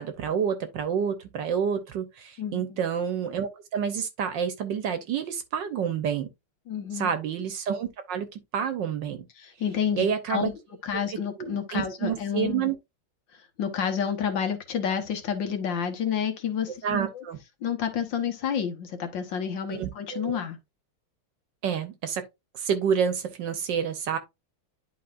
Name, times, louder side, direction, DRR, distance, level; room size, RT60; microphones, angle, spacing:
voice 1, 0.0-6.3 6.9-9.3 10.0-10.5 11.4-12.7 16.8-17.4 19.7-20.4 21.6-22.2 22.5-24.2, right 7 dB, 65° right, 1.3 m, -29 dB
voice 2, 2.4-2.8 6.7-7.1 9.4-10.5 10.8-12.7 13.6-17.2 17.6-20.6, left 8 dB, 65° left, 1.7 m, -29 dB
10.5 x 4.1 x 2.5 m
omnidirectional pair, 2.3 m